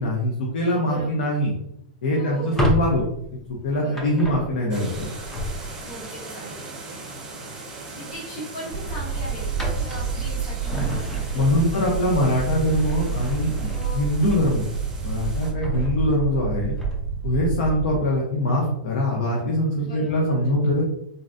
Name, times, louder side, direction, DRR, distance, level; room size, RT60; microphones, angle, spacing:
voice 1, 0.0-1.5 2.0-3.0 3.6-5.1 11.3-14.7 15.0-16.7 17.2-20.8, left 1 dB, 75° left, -2 dB, 0.8 m, -23 dB
voice 2, 0.8-1.3 2.1-2.7 3.8-4.1 5.8-6.6 7.9-12.2 13.7-14.0 19.8-20.5, right 1 dB, 55° left, -8 dB, 1.3 m, -38 dB
Drawer open or close, 2.3-6.0 7.5-7.8 8.1-8.3 8.8-11.7 12.1-14.9 15.3-17.2, equal, 5° left, 0.5 m, -31 dB
sound 1, 4.7-15.5, right 3 dB, 15° right, 1.1 m, -39 dB
sound 2, 8.7-18.0, right 5 dB, 50° right, 0.3 m, -29 dB
3.8 x 2.2 x 2.6 m, 0.77 s
supercardioid pair, 155°, 5 cm